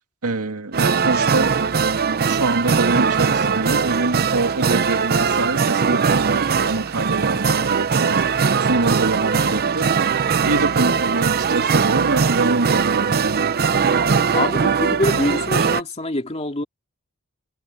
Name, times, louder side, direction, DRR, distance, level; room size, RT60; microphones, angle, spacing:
voice 1, 0.2-1.6 2.3-8.2 8.6-9.9 10.5-13.5, right 2 dB, 85° right, 2.1 m, -25 dB
sound 1, 0.7-15.8, right 5 dB, 45° right, 0.6 m, -20 dB
voice 2, 14.3-16.6, left 1 dB, 30° left, 2.5 m, -24 dB
head